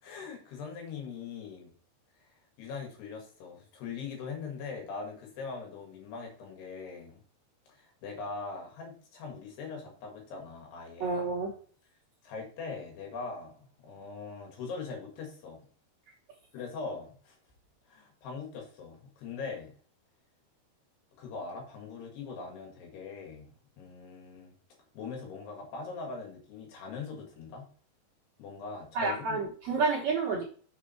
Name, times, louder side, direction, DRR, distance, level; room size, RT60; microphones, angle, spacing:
voice 1, 0.0-1.7 2.6-7.2 7.7-11.2 12.2-15.7 16.5-17.4 17.9-19.7 21.2-24.6 24.9-27.7 28.4-29.4, left 4 dB, 75° left, 1 dB, 3.9 m, -41 dB
voice 2, 11.0-11.5 28.9-30.4, right 4 dB, 75° right, -2 dB, 1.6 m, -29 dB
6.5 x 5.0 x 4.4 m, 0.43 s
omnidirectional pair, 4.8 m